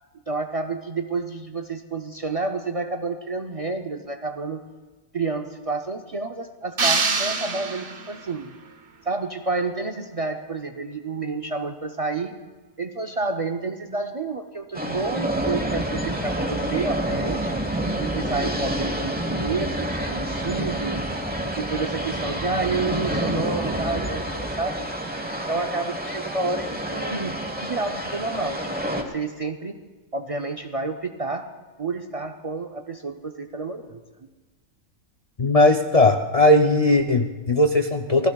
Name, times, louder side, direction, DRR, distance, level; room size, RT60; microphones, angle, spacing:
voice 1, 0.3-4.6 5.1-8.6 9.1-12.3 12.8-17.6 18.0-21.1 21.5-24.8 25.5-29.7 30.1-31.4 31.8-34.0, right 3 dB, 60° right, 4 dB, 0.3 m, -29 dB
sound 1, 6.8-8.3, right 4 dB, 45° right, 1.1 m, -25 dB
sound 2, 14.7-29.0, right 1 dB, 10° right, 0.8 m, -28 dB
voice 2, 35.4-38.3, left 1 dB, 65° left, 4 dB, 0.3 m, -18 dB
27.5 x 17.0 x 2.3 m, 1.3 s
omnidirectional pair, 1.5 m